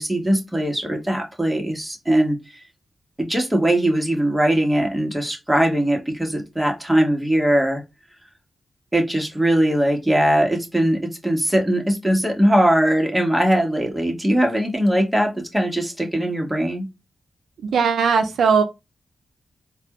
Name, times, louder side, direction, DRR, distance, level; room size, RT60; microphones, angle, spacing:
voice 1, 0.0-2.4 3.2-7.8 8.9-16.9, right 1 dB, 10° right, 1.5 m, -20 dB
voice 2, 17.7-18.6, right 6 dB, 85° right, 0.5 m, -18 dB
3.9 x 2.4 x 3.0 m
cardioid pair, 50°, 0 cm